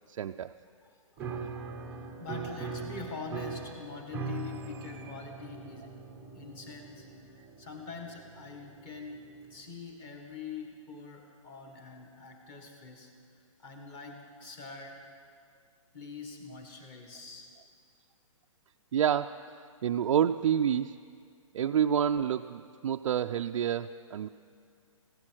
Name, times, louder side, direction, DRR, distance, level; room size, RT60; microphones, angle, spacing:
voice 1, 0.1-0.5 1.3-1.5 18.9-21.0 21.5-24.3, right 9 dB, 70° right, 6 dB, 0.4 m, -29 dB
voice 2, 0.8-1.4 1.9-5.9 6.3-13.1 13.6-15.0 15.9-17.5, left 4 dB, 20° left, 3 dB, 1.5 m, -44 dB
Piano, 1.2-9.7, right 4 dB, 10° right, 0.6 m, -41 dB
16.0 x 13.0 x 6.2 m, 2.2 s
hypercardioid pair, 165°, 17 cm